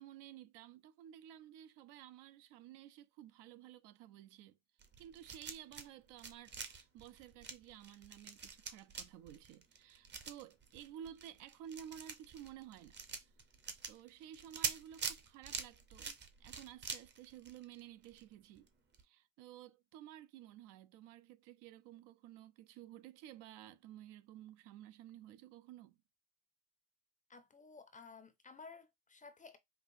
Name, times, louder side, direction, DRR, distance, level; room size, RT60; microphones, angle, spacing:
voice 1, 0.0-4.6 5.0-13.3 13.9-18.7 19.0-26.0, right 11 dB, 65° right, 0.6 m, -54 dB
sound 1, 4.8-5.9 6.1-18.2 18.6-18.7 18.9-19.0, right 5 dB, 25° right, 0.7 m, -45 dB
voice 2, 27.3-29.6, left 4 dB, 15° left, 0.5 m, -55 dB
5.4 x 2.4 x 2.6 m
supercardioid pair, 115°, 47 cm